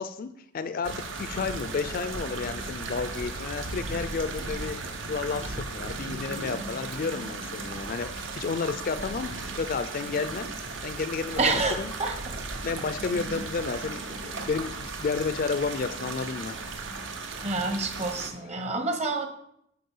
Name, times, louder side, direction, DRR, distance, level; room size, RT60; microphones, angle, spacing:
voice 1, 0.0-10.5 10.8-11.9 12.6-16.6, left 5 dB, 50° left, 11 dB, 0.4 m, -32 dB
sound 1, 0.8-18.3, right 3 dB, 85° right, 0.9 m, -36 dB
voice 2, 11.4-12.1 17.4-19.3, right 3 dB, 35° right, 6 dB, 0.9 m, -28 dB
7.6 x 4.5 x 5.5 m, 0.75 s
head